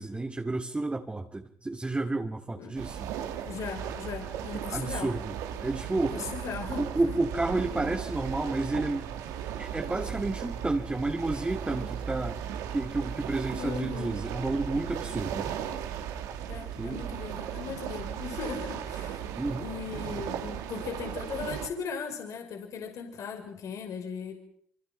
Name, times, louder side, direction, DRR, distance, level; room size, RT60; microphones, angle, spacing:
voice 1, 0.0-3.1 4.7-5.4 5.6-6.2 6.8-9.1 9.6-12.4 12.7-15.5 16.8-17.0 19.4-19.7, right 2 dB, 20° right, 4 dB, 2.5 m, -31 dB
sound 1, 2.8-21.7, right 9 dB, 75° right, 2.7 m, -36 dB
voice 2, 3.4-5.1 6.1-7.1 13.6-14.1 16.5-19.2 19.5-24.4, left 6 dB, 65° left, 4 dB, 5.6 m, -38 dB
26.5 x 26.0 x 5.7 m, 0.65 s
hypercardioid pair, 55°, 6 cm